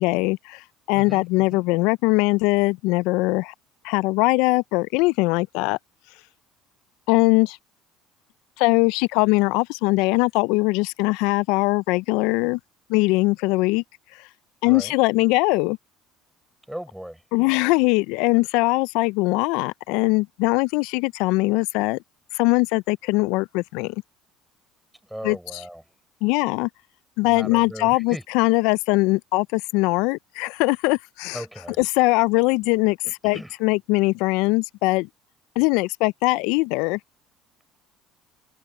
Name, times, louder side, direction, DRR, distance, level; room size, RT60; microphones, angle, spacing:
voice 1, 0.0-3.5 3.8-5.8 7.1-7.6 8.6-12.6 12.9-13.8 14.1-14.3 14.6-15.8 17.3-22.0 22.3-24.0 25.2-25.6 26.2-26.7 27.2-31.5 31.8-35.1 35.6-37.0, left 24 dB, 75° left, 0.4 m, -21 dB
voice 2, 16.7-17.2 25.1-25.8 27.2-28.2 31.3-31.8 33.0-33.5, right 1 dB, 5° right, 6.6 m, -37 dB
open air
hypercardioid pair, 70°, 0 cm